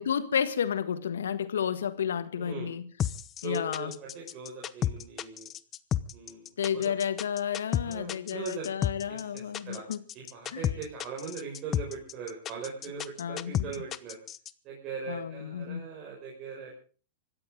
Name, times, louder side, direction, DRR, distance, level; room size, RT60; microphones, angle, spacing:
voice 1, 0.0-2.9 3.4-3.9 6.6-10.0 10.5-10.6 13.2-13.7 15.1-15.9, left 8 dB, 80° left, 1.5 m, -31 dB
voice 2, 2.4-2.7 3.4-5.5 6.1-6.8 7.8-8.7 9.1-9.8 10.1-14.2 14.6-16.7, right 5 dB, 40° right, 5.7 m, -40 dB
sound 1, 3.0-14.5, left 10 dB, 30° left, 0.9 m, -32 dB
25.5 x 13.5 x 3.7 m
hypercardioid pair, 105°, 0 cm